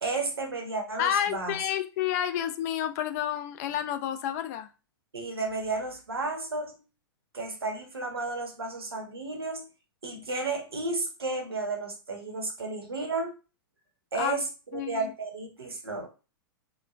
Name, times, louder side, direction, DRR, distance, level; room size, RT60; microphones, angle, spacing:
voice 1, 0.0-1.6 5.1-6.8 7.3-9.6 10.0-13.3 14.1-14.5 14.7-16.1, right 3 dB, 85° right, 3 dB, 0.7 m, -32 dB
voice 2, 1.0-4.7 14.2-14.4 14.7-15.1, left 10 dB, 45° left, 8 dB, 0.3 m, -30 dB
3.0 x 2.0 x 2.4 m, 0.32 s
figure-of-eight pair, 105°, 12 cm